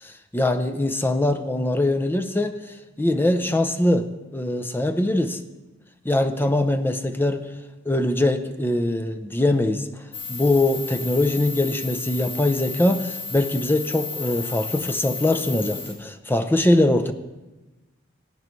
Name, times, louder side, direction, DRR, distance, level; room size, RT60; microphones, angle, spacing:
voice 1, 0.0-2.6 3.0-4.1 4.3-5.4 6.0-7.5 7.9-9.9 10.3-17.1, left 1 dB, 10° left, 8 dB, 0.6 m, -22 dB
sound 1, 10.1-15.9, left 4 dB, 25° left, 2.3 m, -33 dB
19.0 x 9.0 x 3.2 m, 1.1 s
head